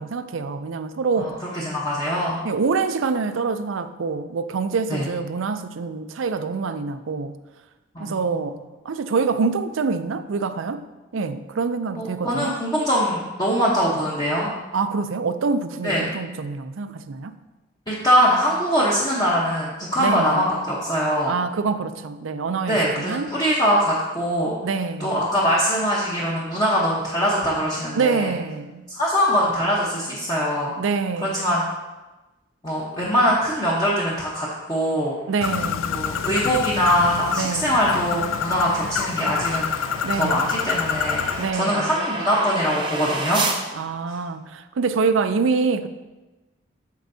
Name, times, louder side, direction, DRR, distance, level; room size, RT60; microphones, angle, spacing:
voice 1, 0.0-1.4 2.4-7.4 8.0-8.6 8.8-10.8 11.1-12.5 14.7-17.3 20.0-20.4 21.3-23.3 24.6-25.2 27.9-28.8 30.8-31.5 35.3-36.0 37.4-37.7 40.0-40.6 41.4-41.9 43.7-45.9, right 4 dB, 80° right, 0.5 m, -25 dB
voice 2, 1.2-2.4 4.9-5.1 7.9-8.2 12.0-14.5 15.8-16.0 17.9-21.4 22.7-24.6 25.0-28.3 28.9-30.7 31.2-31.7 32.6-35.2 35.9-39.7 40.1-43.4 44.1-44.2, equal, 20° left, 0.9 m, -22 dB
sound 1, 35.0-43.6, right 3 dB, 25° right, 0.6 m, -33 dB
Bird, 35.4-41.5, left 7 dB, 85° left, 0.4 m, -27 dB
13.0 x 4.5 x 2.7 m
head